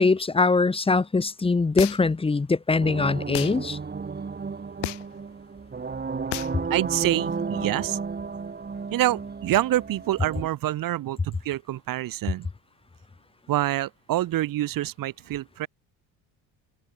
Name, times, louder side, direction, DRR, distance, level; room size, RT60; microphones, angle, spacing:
voice 1, 0.0-3.8, left 3 dB, 15° left, 0.9 m, -22 dB
sound 1, 1.8-2.2 3.3-3.6 4.8-5.2 6.3-6.6, left 21 dB, 80° left, 3.5 m, -32 dB
sound 2, 2.8-10.5, right 5 dB, 25° right, 2.5 m, -33 dB
voice 2, 6.7-8.0 8.9-12.5 13.5-15.7, right 14 dB, 55° right, 1.2 m, -26 dB
cardioid pair, 95°, 40 cm